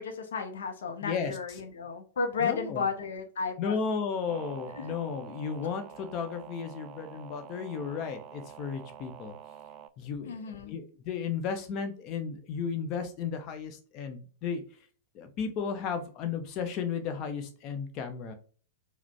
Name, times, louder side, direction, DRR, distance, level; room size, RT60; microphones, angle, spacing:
voice 1, 0.0-3.8 4.7-5.0 10.2-10.8, left 5 dB, 65° left, 4 dB, 0.6 m, -33 dB
voice 2, 2.4-2.8 3.6-9.3 10.0-10.4 10.7-14.6 15.1-18.3, left 6 dB, 35° left, 6 dB, 0.8 m, -34 dB
sound 1, 4.3-9.9, right 9 dB, 30° right, 0.3 m, -47 dB
4.8 x 2.2 x 3.4 m, 0.42 s
figure-of-eight pair, 100°, 0 cm